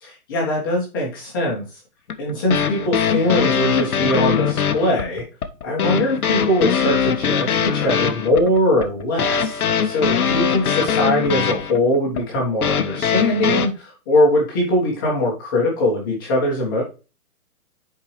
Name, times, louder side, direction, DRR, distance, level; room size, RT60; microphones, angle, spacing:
voice 1, 0.0-1.6 2.2-5.2 5.6-16.8, left 1 dB, 15° left, -3 dB, 1.3 m, -21 dB
sound 1, 2.1-13.7, left 7 dB, 75° left, 1.0 m, -21 dB
9.5 x 4.6 x 3.1 m, 0.31 s
hypercardioid pair, 170°, 45 cm